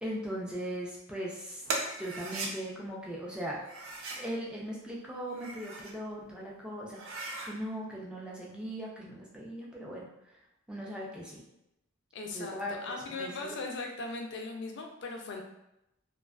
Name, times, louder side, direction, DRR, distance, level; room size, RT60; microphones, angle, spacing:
voice 1, 0.0-1.6 2.0-3.6 4.2-10.1 10.7-11.4 12.3-12.8 13.2-13.6, equal, 5° right, -4 dB, 0.4 m, -39 dB
sound 1, 1.7-2.5 3.6-4.3 5.2-6.0 6.4-6.5 6.9-7.5, right 3 dB, 85° right, 0.4 m, -38 dB
voice 2, 12.1-12.5 12.8-15.4, left 3 dB, 60° left, 2 dB, 0.4 m, -38 dB
2.4 x 2.3 x 2.3 m, 0.86 s
head